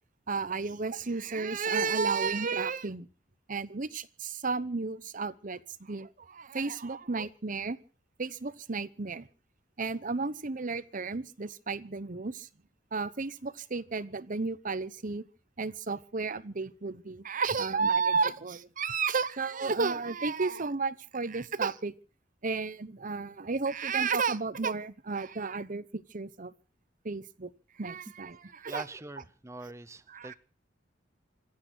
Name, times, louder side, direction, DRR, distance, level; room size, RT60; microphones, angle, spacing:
voice 1, 0.3-3.1 3.5-7.8 8.2-9.3 9.8-12.5 12.9-15.2 15.6-21.9 22.4-26.5 27.0-27.5 27.8-28.9 30.1-30.3, right 4 dB, 45° right, 16 dB, 0.9 m, -32 dB
voice 2, 28.4-30.3, right 2 dB, 15° right, 13 dB, 0.7 m, -43 dB
26.0 x 8.8 x 6.2 m, 0.38 s
head